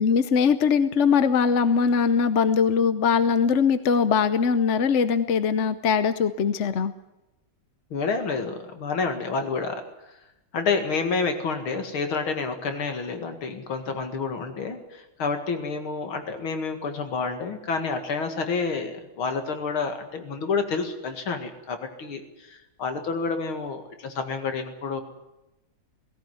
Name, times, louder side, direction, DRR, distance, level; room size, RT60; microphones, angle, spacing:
voice 1, 0.0-6.9, left 6 dB, 55° left, 12 dB, 0.8 m, -21 dB
voice 2, 7.9-9.8 10.5-25.0, left 4 dB, 80° left, 6 dB, 2.9 m, -29 dB
18.5 x 17.0 x 9.4 m, 0.95 s
omnidirectional pair, 2.3 m